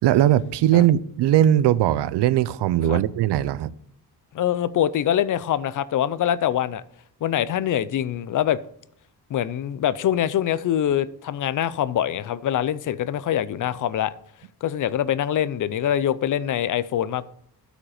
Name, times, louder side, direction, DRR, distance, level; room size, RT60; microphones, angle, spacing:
voice 1, 0.0-3.7, right 12 dB, 85° right, 0.6 m, -19 dB
voice 2, 4.3-6.8 7.2-8.6 9.3-14.1 14.6-17.3, left 10 dB, 50° left, 0.5 m, -24 dB
12.5 x 5.1 x 4.9 m
wide cardioid pair, 170°, 40 cm